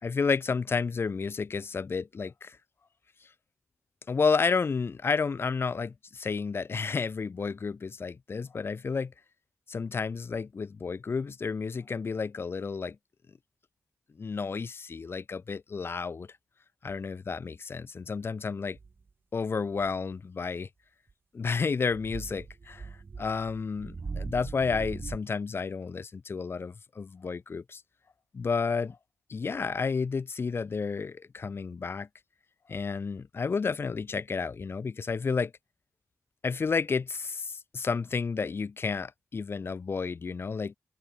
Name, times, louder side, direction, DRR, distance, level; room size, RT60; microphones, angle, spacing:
voice 1, 0.0-2.6 4.1-9.1 9.7-13.0 14.2-16.3 16.8-18.8 19.3-20.7 21.3-22.9 23.2-27.8 28.3-29.0 29.3-32.1 32.7-35.5 36.4-40.7, left 5 dB, 50° left, 2.8 m, -31 dB
sound 1, 18.7-19.0 19.8-20.1 21.1-21.2 21.9-25.2, right 4 dB, 45° right, 3.5 m, -40 dB
wide cardioid pair, 90°, 5 cm